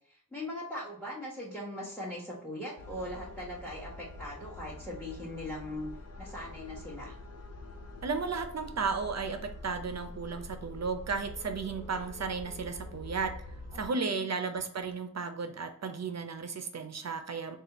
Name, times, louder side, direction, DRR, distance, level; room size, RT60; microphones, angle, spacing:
voice 1, 0.1-5.9 6.2-7.1 13.7-14.3, left 1 dB, ahead, -6 dB, 1.1 m, -40 dB
sound 1, 2.8-13.9, left 2 dB, 50° left, 0.5 m, -46 dB
voice 2, 8.0-13.3 13.7-17.6, right 5 dB, 50° right, 7 dB, 0.6 m, -34 dB
4.1 x 2.4 x 2.9 m, 0.62 s
wide cardioid pair, 70°, 33 cm